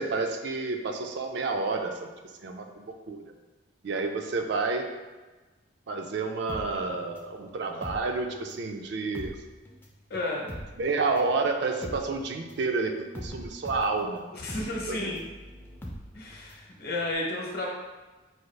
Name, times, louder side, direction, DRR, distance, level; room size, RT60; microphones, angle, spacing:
voice 1, 0.0-2.1 2.4-3.2 3.8-4.9 5.9-9.3 10.8-14.2 14.9-15.1, right 3 dB, 60° right, 4 dB, 0.4 m, -30 dB
sound 1, 6.5-8.7 9.0-16.7 17.0-17.1, equal, 10° left, 0.3 m, -42 dB
voice 2, 10.1-10.5 14.3-15.2 16.1-17.7, left 2 dB, 50° left, -2 dB, 0.8 m, -32 dB
4.8 x 2.3 x 3.2 m, 1.2 s
head